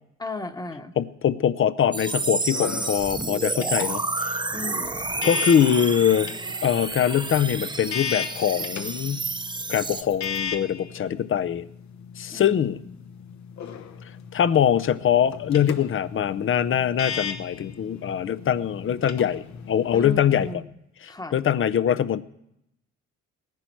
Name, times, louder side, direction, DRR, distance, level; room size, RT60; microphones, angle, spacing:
voice 1, 0.2-0.9 4.5-5.1 12.3-12.8 19.9-20.7 21.1-21.4, left 2 dB, 15° left, 8 dB, 1.2 m, -35 dB
voice 2, 1.0-4.3 5.2-6.3 6.6-9.2 9.7-11.7 12.2-12.8 14.3-20.6 21.0-22.2, left 9 dB, 45° left, 16 dB, 0.6 m, -23 dB
sound 1, 1.9-20.5, left 6 dB, 65° left, 1.1 m, -37 dB
sound 2, 1.9-10.0, right 3 dB, 15° right, 0.8 m, -30 dB
sound 3, 3.0-10.5, left 7 dB, 90° left, 5.4 m, -45 dB
18.5 x 10.5 x 4.6 m, 0.82 s
cardioid pair, 90°, 30 cm